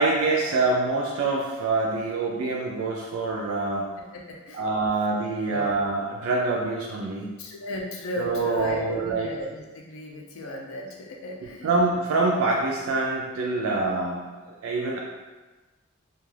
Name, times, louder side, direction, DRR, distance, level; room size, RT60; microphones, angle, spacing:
voice 1, 0.0-3.9 4.6-7.3 8.2-9.3 11.6-14.3 14.6-15.0, right 3 dB, 90° right, -2 dB, 0.4 m, -25 dB
voice 2, 4.1-4.6 5.5-5.7 7.4-11.8, left 1 dB, 80° left, 0 dB, 0.5 m, -35 dB
2.3 x 2.2 x 3.2 m, 1.2 s
head